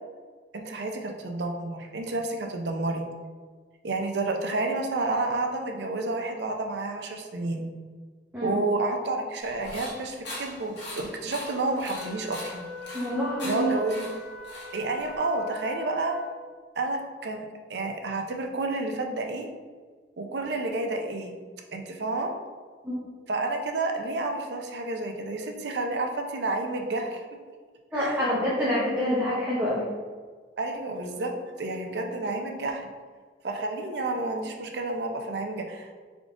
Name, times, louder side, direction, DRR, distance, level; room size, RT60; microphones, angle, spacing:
voice 1, 0.5-3.1 3.8-7.7 8.4-10.7 11.2-12.6 13.4-14.1 14.7-16.2 16.8-19.5 20.2-21.3 21.7-22.3 23.3-27.2 27.9-28.3 30.6-31.3 31.6-32.9 33.4-35.9, right 2 dB, 70° right, 3 dB, 0.5 m, -30 dB
sound 1, 9.4-15.2, left 1 dB, 80° left, 1.4 m, -41 dB
Wind instrument woodwind instrument, 11.9-16.6, left 3 dB, 50° left, 0.5 m, -42 dB
voice 2, 12.9-13.8 22.8-23.0 27.9-29.9, equal, 10° right, -8 dB, 0.8 m, -27 dB
3.7 x 3.7 x 3.6 m, 1.5 s
head